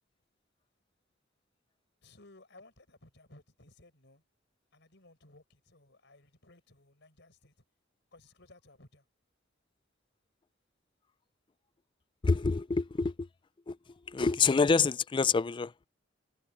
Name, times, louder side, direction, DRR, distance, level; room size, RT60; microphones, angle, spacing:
voice 1, 2.0-4.2 4.7-7.5 8.1-9.0, left 2 dB, 65° left, 6.2 m, -58 dB
voice 2, 12.2-13.3 13.7-13.8 14.1-15.9, left 4 dB, 25° left, 0.4 m, -27 dB
head